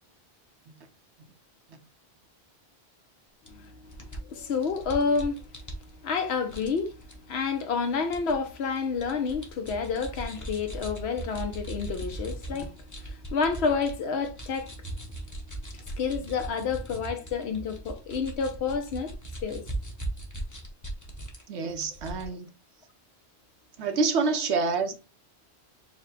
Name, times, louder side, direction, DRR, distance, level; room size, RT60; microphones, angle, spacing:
voice 1, 3.5-5.4 6.0-7.0 7.3-12.7 13.0-14.7 15.7-19.1 19.4-19.6, left 5 dB, 70° left, 0.9 m, -29 dB
sound 1, 3.5-3.6 3.9-6.2 6.5-7.1 8.1-8.3 8.7-13.9 14.2-21.4 21.7-22.3, right 1 dB, 20° left, 0.8 m, -39 dB
voice 2, 21.5-22.5 23.8-25.0, right 4 dB, 80° right, 1.0 m, -28 dB
4.6 x 2.1 x 3.9 m
omnidirectional pair, 1.1 m